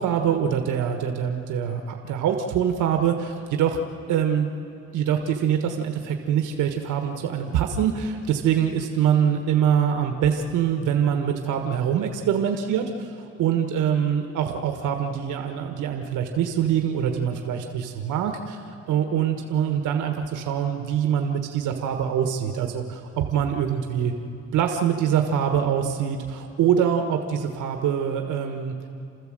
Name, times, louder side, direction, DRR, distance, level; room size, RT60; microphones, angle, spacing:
voice 1, 0.0-3.8 4.1-4.5 4.9-13.1 13.4-18.6 18.9-24.1 24.5-28.7, right 8 dB, 90° right, 4 dB, 1.4 m, -24 dB
29.5 x 13.5 x 7.7 m, 2.6 s
cardioid pair, 90°, 30 cm